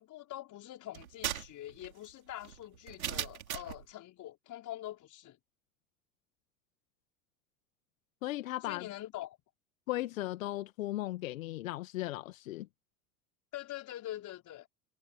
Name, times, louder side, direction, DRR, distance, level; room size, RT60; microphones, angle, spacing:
voice 1, 0.0-5.4 8.6-9.4 13.5-14.7, left 14 dB, 45° left, 5.0 m, -44 dB
sound 1, 0.9-3.8, right 10 dB, 75° right, 4.7 m, -39 dB
voice 2, 8.2-8.9 9.9-12.7, left 16 dB, 70° left, 2.1 m, -36 dB
figure-of-eight pair, 75°, 42 cm